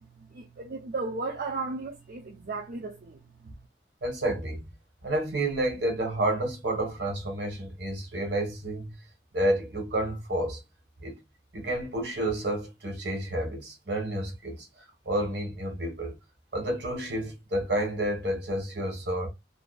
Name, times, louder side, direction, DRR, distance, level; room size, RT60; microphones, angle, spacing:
voice 1, 0.2-3.2 3.4-3.5, right 3 dB, 50° right, 0.4 m, -35 dB
voice 2, 4.0-4.7 5.0-8.9 9.3-10.6 11.0-11.2 11.5-14.7 15.1-16.2 16.5-19.3, right 1 dB, 70° right, 1.0 m, -30 dB
2.6 x 2.1 x 2.3 m
head